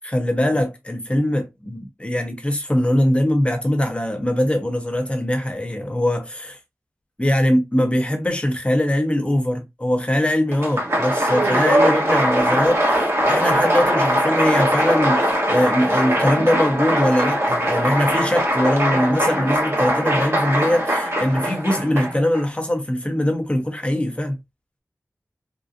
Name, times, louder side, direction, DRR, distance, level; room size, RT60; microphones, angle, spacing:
voice 1, 0.0-6.6 7.2-24.4, left 1 dB, 20° left, 1.0 m, -22 dB
Applause, 10.5-22.4, equal, 50° right, 1.3 m, -20 dB
3.8 x 2.3 x 2.6 m
wide cardioid pair, 70°, 6 cm